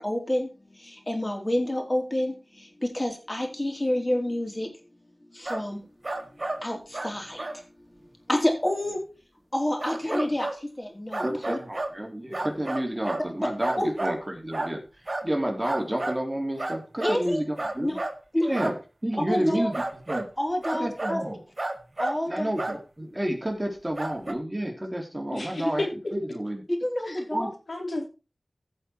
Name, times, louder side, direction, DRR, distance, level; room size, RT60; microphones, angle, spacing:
voice 1, 0.0-4.7 5.3-5.8 6.6-7.6 8.3-9.0 9.5-11.6 13.8-13.9 17.0-17.4 17.8-18.0 18.3-18.6 19.2-19.7 20.4-21.2 22.0-22.5 25.8-25.9 26.8-27.5, left 1 dB, 25° left, 2 dB, 4.1 m, -28 dB
sound 1, 5.5-5.7 6.0-6.6 6.9-7.1 7.4-7.6 9.8-10.6 11.1-12.0 12.3-13.2 13.6-14.2 14.5-14.8 15.1-15.3 15.6-16.2 16.6-17.2 17.6-18.2 18.5-18.8 19.7-20.3 20.6-21.2 21.6-22.2 22.6-22.8 24.0-24.3, right 2 dB, 50° right, 1.5 m, -31 dB
voice 2, 11.2-14.8 15.2-18.0 18.4-18.7 19.0-20.3 20.7-21.4 22.3-25.8 26.1-26.6 27.3-27.5, right 1 dB, 20° right, 1 dB, 3.4 m, -30 dB
voice 3, 25.3-25.9 27.0-27.2 27.7-28.1, left 2 dB, 80° left, -1 dB, 3.9 m, -32 dB
16.0 x 5.8 x 4.7 m, 0.32 s
wide cardioid pair, 45°, 0 cm